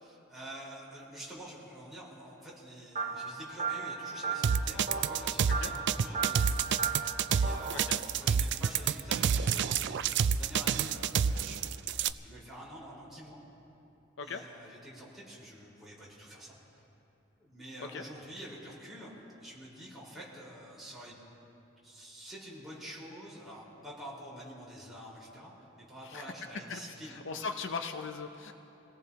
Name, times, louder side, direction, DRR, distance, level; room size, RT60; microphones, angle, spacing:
voice 1, 0.0-6.5 7.3-7.9 8.2-11.9 12.2-13.4 14.2-16.8 17.4-19.1 19.4-21.2 21.8-27.5, equal, ahead, -8 dB, 4.7 m, -48 dB
sound 1, 3.0-7.7, right 5 dB, 35° right, 2.0 m, -36 dB
sound 2, 4.4-12.1, right 7 dB, 60° right, 0.4 m, -28 dB
voice 2, 26.7-28.5, left 4 dB, 65° left, 6 dB, 0.7 m, -39 dB
27.5 x 18.0 x 3.0 m, 2.9 s
head